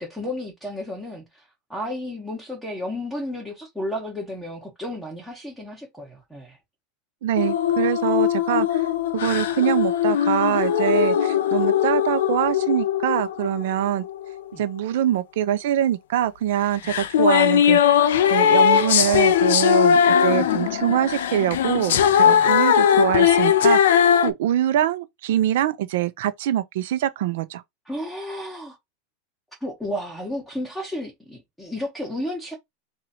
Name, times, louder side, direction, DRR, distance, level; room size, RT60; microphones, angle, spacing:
voice 1, 0.0-6.6 14.5-14.6 16.8-16.9 20.4-20.5 22.3-22.5 27.9-28.8 29.6-32.5, left 1 dB, ahead, 1.3 m, -32 dB
voice 2, 7.2-8.9 9.1-14.0 14.6-17.9 18.3-27.6, right 11 dB, 70° right, 0.7 m, -24 dB
sound 1, 7.4-14.4 16.8-24.3, left 9 dB, 85° left, 0.5 m, -19 dB
3.0 x 2.6 x 4.2 m
supercardioid pair, 155°, 0 cm